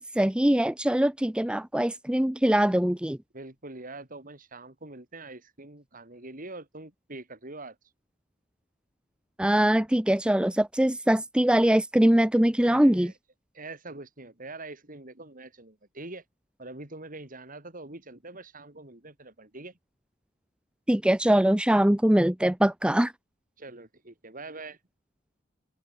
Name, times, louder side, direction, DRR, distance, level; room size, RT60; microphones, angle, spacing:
voice 1, 0.0-3.2 9.4-13.1 20.9-23.1, right 1 dB, 5° right, 0.5 m, -22 dB
voice 2, 3.3-7.8 12.6-13.1 13.5-16.2 16.6-19.8 23.6-24.8, right 2 dB, 45° right, 3.8 m, -44 dB
head